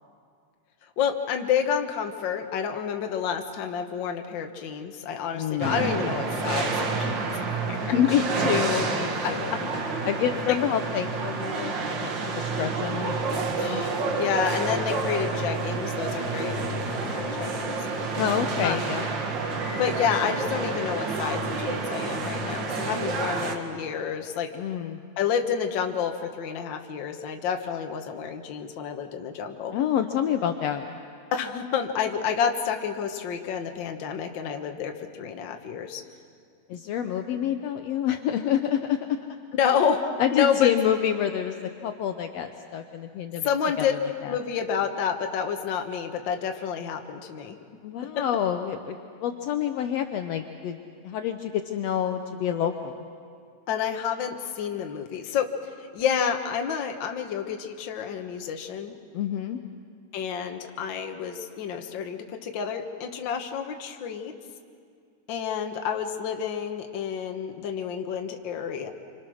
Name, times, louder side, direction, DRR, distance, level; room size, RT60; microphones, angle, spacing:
voice 1, 1.0-7.9 9.2-9.3 13.6-17.8 18.6-18.8 19.7-24.5 25.2-29.7 31.3-36.0 39.5-40.7 43.4-43.9 44.3-47.5 48.1-48.2 53.7-55.5 55.9-58.9 60.1-64.3 65.3-68.9, left 7 dB, 60° left, 5 dB, 1.2 m, -29 dB
voice 2, 5.3-5.9 7.9-9.7 10.0-13.1 13.7-13.9 18.2-19.1 24.5-25.0 29.7-30.9 36.7-39.0 39.7-39.8 40.2-43.5 43.8-44.3 47.8-50.8 51.0-53.0 59.1-59.6, left 9 dB, 85° left, 6 dB, 1.4 m, -28 dB
sound 1, 5.6-23.6, right 3 dB, 45° right, 1.6 m, -29 dB
27.0 x 25.5 x 6.3 m, 2.2 s
omnidirectional pair, 3.9 m